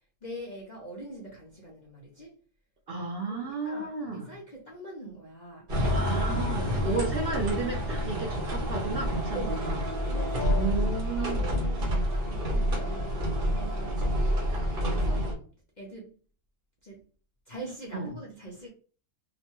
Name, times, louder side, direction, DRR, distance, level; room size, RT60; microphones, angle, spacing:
voice 1, 0.2-2.4 3.3-5.7 9.3-9.7 10.0-10.7 11.2-14.5 14.9-15.3 15.8-16.2 16.8-17.0 17.5-18.7, equal, 60° left, 0.4 m, -42 dB
voice 2, 2.9-4.3 5.9-9.8 10.5-11.5 14.9-15.2 17.9-18.1, right 4 dB, 85° right, 0.5 m, -33 dB
sound 1, 5.7-15.3, equal, 45° right, 0.8 m, -28 dB
2.9 x 2.1 x 2.9 m
omnidirectional pair, 1.7 m